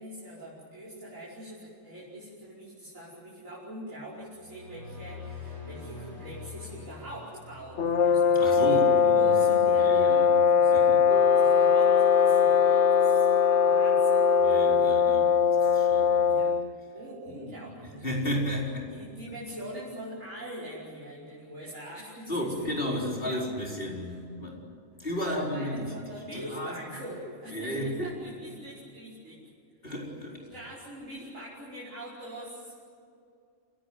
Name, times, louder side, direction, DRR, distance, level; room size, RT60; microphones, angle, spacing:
voice 1, 0.0-10.9 11.4-14.3 16.3-16.6 16.9-18.3 18.9-24.2 25.0-29.4 30.5-32.7, right 1 dB, 90° right, -7 dB, 5.8 m, -43 dB
sound 1, 4.3-8.6, left 4 dB, 40° right, 6.8 m, -44 dB
sound 2, 7.8-16.7, left 7 dB, 65° left, 1.1 m, -21 dB
voice 2, 8.3-10.4 10.7-11.0 14.4-16.3 17.3-17.5 18.0-19.0 22.3-24.6 25.0-25.9 26.3-26.8 27.5-28.1 29.8-30.4, equal, 45° left, -2 dB, 5.0 m, -33 dB
Wind instrument woodwind instrument, 11.1-15.1, right 4 dB, 5° right, 1.8 m, -34 dB
29.0 x 17.0 x 9.5 m, 2.5 s
omnidirectional pair, 1.3 m